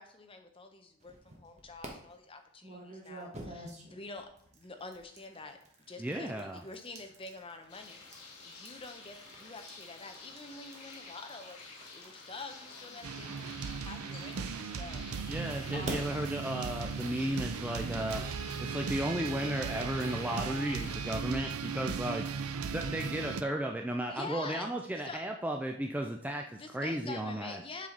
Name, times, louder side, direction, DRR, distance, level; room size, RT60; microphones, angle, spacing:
voice 1, 0.0-5.6 5.9-11.6 11.9-15.4 15.7-16.2 24.1-25.2 26.5-27.9, left 3 dB, 25° left, 6 dB, 0.7 m, -47 dB
sound 1, 1.0-1.9 2.6-14.7 15.3-18.3, right 1 dB, 30° right, 1.2 m, -49 dB
voice 2, 6.0-6.6 15.3-18.2 18.6-22.3 22.7-27.6, right 1 dB, 5° right, 2 dB, 0.3 m, -34 dB
sound 2, 7.7-21.2, left 4 dB, 85° left, 1.6 m, -51 dB
sound 3, 13.0-23.4, right 5 dB, 75° right, 0.5 m, -37 dB
7.5 x 5.6 x 3.8 m, 0.67 s
head